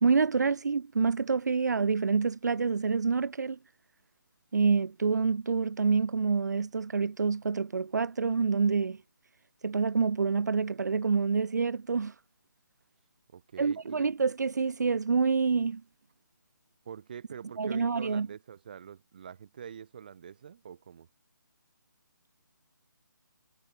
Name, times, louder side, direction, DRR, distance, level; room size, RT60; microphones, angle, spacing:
voice 1, 0.0-3.6 4.5-9.0 9.6-12.1 13.6-15.8 17.6-18.3, right 5 dB, 60° right, 0.8 m, -27 dB
voice 2, 13.3-14.1 16.8-21.1, right 8 dB, 25° right, 1.1 m, -45 dB
hypercardioid pair, 175°, 11 cm